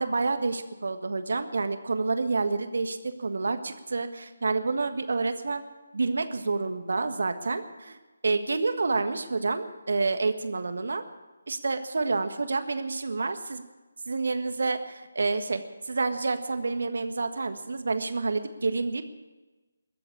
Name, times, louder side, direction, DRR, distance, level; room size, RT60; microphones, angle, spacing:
voice 1, 0.0-5.6 5.9-11.0 11.5-13.6 14.1-15.6 15.9-19.1, right 3 dB, 65° right, 8 dB, 1.5 m, -28 dB
21.5 x 7.9 x 8.5 m, 1.2 s
figure-of-eight pair, 155°, 0 cm